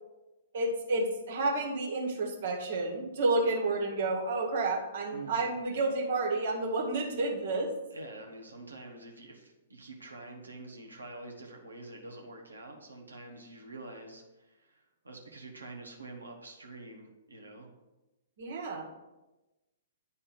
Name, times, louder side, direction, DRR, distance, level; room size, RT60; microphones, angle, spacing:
voice 1, 0.5-7.7 18.4-18.8, right 2 dB, 60° right, -1 dB, 1.9 m, -30 dB
voice 2, 5.1-5.5 7.9-17.7, right 2 dB, 85° right, 2 dB, 1.2 m, -47 dB
9.3 x 4.2 x 5.3 m, 1.1 s
figure-of-eight pair, 115°, 0 cm